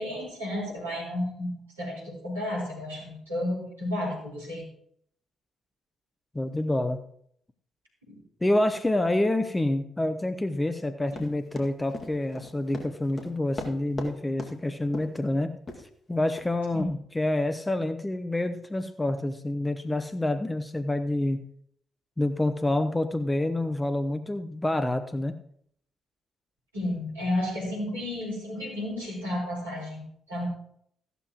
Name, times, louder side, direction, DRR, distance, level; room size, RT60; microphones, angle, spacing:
voice 1, 0.0-4.7 8.1-8.2 16.7-16.8 26.7-30.5, left 1 dB, 85° right, -6 dB, 4.2 m, -32 dB
voice 2, 6.3-7.0 8.4-15.5 16.1-21.4 22.2-25.4, left 1 dB, 15° left, 9 dB, 0.8 m, -27 dB
Run, 11.1-14.1 14.4-14.5 14.9-15.2 15.7-15.8 16.4-16.5, left 2 dB, 35° left, 2.1 m, -37 dB
14.5 x 12.0 x 3.0 m, 0.66 s
figure-of-eight pair, 40°, 0 cm